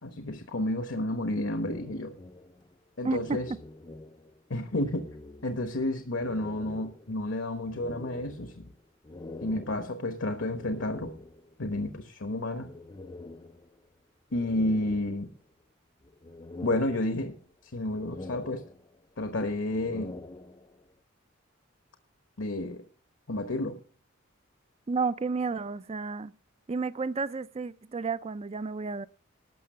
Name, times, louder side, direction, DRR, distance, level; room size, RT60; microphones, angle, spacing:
voice 1, 0.0-2.1 3.0-3.5 4.5-5.1 5.4-8.7 9.4-11.1 11.6-12.7 14.3-15.3 16.6-17.4 17.6-18.6 19.2-20.2 22.4-22.8 23.3-23.8, left 1 dB, 65° left, 1.1 m, -31 dB
sound 1, 1.6-4.4 4.7-5.8 6.2-11.6 12.6-13.9 14.3-15.6 16.0-17.5 17.8-19.1 19.6-20.9, left 2 dB, 20° left, 0.5 m, -46 dB
voice 2, 3.0-3.4 24.9-26.3 26.7-29.1, right 4 dB, 30° right, 0.4 m, -31 dB
12.5 x 6.3 x 7.7 m
head